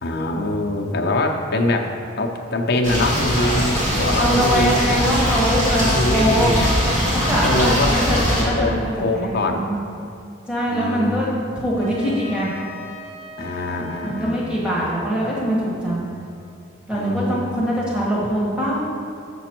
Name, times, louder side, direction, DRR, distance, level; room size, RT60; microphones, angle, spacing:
voice 1, 0.0-4.9 5.7-6.8 7.4-8.0 8.4-9.7 10.7-11.6 12.0-12.4 13.4-14.4 14.8-15.2 15.8-16.1 16.9-17.6, left 2 dB, 50° left, 1 dB, 0.6 m, -24 dB
sound 1, 2.8-8.4, equal, 35° right, 1.7 m, -21 dB
voice 2, 3.9-6.6 7.1-9.8 10.5-11.3 11.6-12.5 14.0-16.0 16.9-18.8, equal, 5° right, -6 dB, 1.3 m, -23 dB
Trumpet, 11.8-16.6, equal, 65° right, 1.5 m, -41 dB
6.9 x 6.0 x 4.4 m, 2.5 s
head